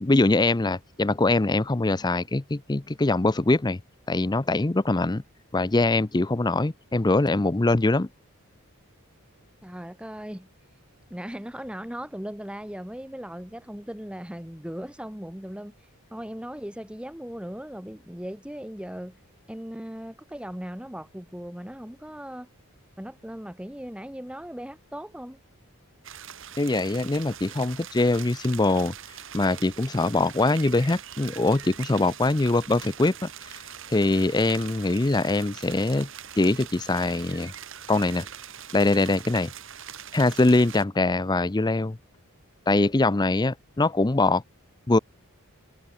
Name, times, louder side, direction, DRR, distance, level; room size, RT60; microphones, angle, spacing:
voice 1, 0.0-3.8 4.1-5.2 5.5-8.1 26.6-28.9 29.3-33.3 33.9-36.1 36.4-37.5 37.9-38.3 38.7-39.5 40.1-42.0 42.7-44.4 44.9-45.0, left 2 dB, 20° left, 0.5 m, -23 dB
voice 2, 9.6-10.5 11.1-15.7 16.1-19.2 19.5-22.5 23.0-25.4, equal, 5° right, 1.1 m, -38 dB
sound 1, 26.0-40.8, right 9 dB, 60° right, 3.1 m, -42 dB
head